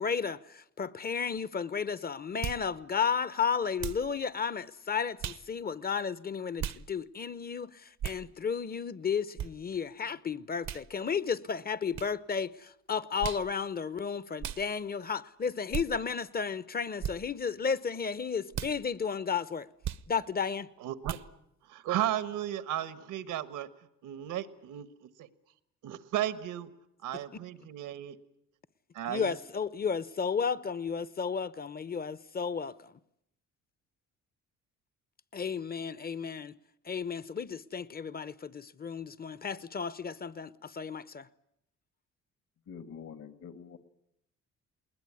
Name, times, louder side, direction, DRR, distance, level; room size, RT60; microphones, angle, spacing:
voice 1, 0.0-19.7 20.1-20.7 27.1-27.4 29.1-33.0 35.3-36.6 36.8-41.3, left 6 dB, 30° left, 0.8 m, -33 dB
sound 1, 2.4-2.7 3.8-4.1 5.2-5.4 6.6-6.8 8.0-8.2 9.4-9.5 10.6-10.8 11.9-12.1 13.2-13.5 14.4-14.6 15.7-15.9 17.0-17.2 18.5-18.7 19.8-20.1 21.0-21.3, right 10 dB, 65° right, 0.9 m, -36 dB
voice 2, 20.8-21.2 21.7-23.7 24.0-24.9 25.2-25.3 25.8-26.7 27.0-28.2 28.9-29.3, right 12 dB, 85° right, 1.4 m, -34 dB
voice 3, 42.7-43.8, left 6 dB, 60° left, 2.0 m, -46 dB
20.5 x 20.0 x 9.6 m
cardioid pair, 90°, 30 cm